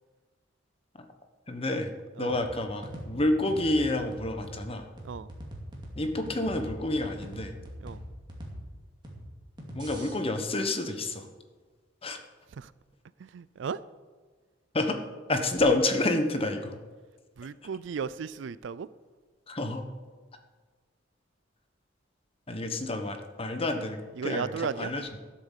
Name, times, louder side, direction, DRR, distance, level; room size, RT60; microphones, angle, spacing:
voice 1, 1.5-1.9 2.2-4.9 6.0-7.5 9.7-11.3 12.0-12.2 14.7-15.0 15.3-16.8 19.5-19.9 22.5-25.2, left 2 dB, 30° left, 6 dB, 1.1 m, -29 dB
sound 1, 2.3-10.1, equal, 25° right, 2.5 m, -43 dB
voice 2, 13.2-13.8 17.4-18.9 24.2-24.9, right 6 dB, 70° right, 17 dB, 0.4 m, -35 dB
12.0 x 7.6 x 7.3 m, 1.4 s
head